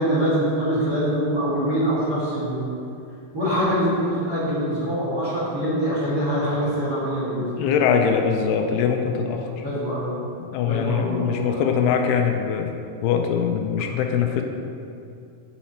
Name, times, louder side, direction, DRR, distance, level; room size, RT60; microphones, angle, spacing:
voice 1, 0.0-2.7 3.3-7.7 9.6-10.2 10.7-11.6, equal, 30° right, -9 dB, 2.0 m, -24 dB
voice 2, 7.4-9.7 10.5-14.4, left 7 dB, 85° left, 4 dB, 2.5 m, -23 dB
8.1 x 7.3 x 4.3 m, 2.5 s
omnidirectional pair, 4.7 m